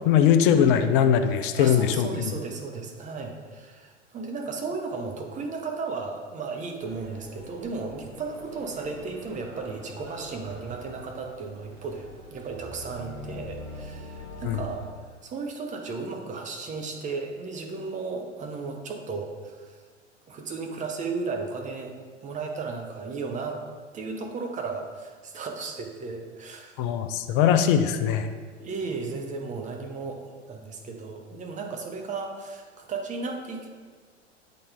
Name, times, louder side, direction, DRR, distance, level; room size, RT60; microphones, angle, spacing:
voice 1, 0.0-2.3 14.4-14.6 26.8-28.3, left 8 dB, 45° left, 9 dB, 0.6 m, -21 dB
voice 2, 1.5-19.8 20.3-21.9 22.2-23.6 23.9-26.8 27.3-27.4 28.3-33.7, right 4 dB, 20° right, 3 dB, 0.8 m, -35 dB
sound 1, 6.8-14.9, left 1 dB, 90° right, 1.8 m, -44 dB
8.4 x 3.9 x 3.5 m, 1.5 s
figure-of-eight pair, 95°, 36 cm